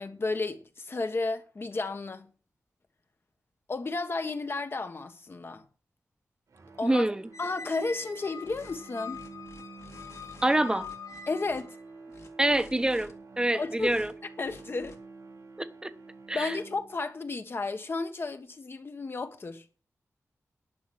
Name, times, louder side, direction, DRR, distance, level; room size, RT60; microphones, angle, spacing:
voice 1, 0.0-2.3 3.7-5.6 6.8-7.0 7.4-9.2 11.3-11.8 13.5-14.0 14.4-14.9 16.3-19.6, left 3 dB, 45° left, 1.4 m, -33 dB
sound 1, 6.5-17.2, right 3 dB, 85° right, 3.1 m, -49 dB
voice 2, 6.8-7.3 10.4-10.9 12.4-13.1 13.4-14.1 15.6-15.9 16.3-16.6, right 1 dB, 15° right, 1.0 m, -26 dB
Squeak, 7.3-11.8, left 5 dB, 80° left, 1.4 m, -44 dB
sound 2, 8.4-8.8 9.1-10.5 10.8-11.6 12.1-13.1 13.8-14.1 14.4-15.0, left 3 dB, 60° left, 2.4 m, -52 dB
11.0 x 5.9 x 8.7 m
wide cardioid pair, 120°, 5 cm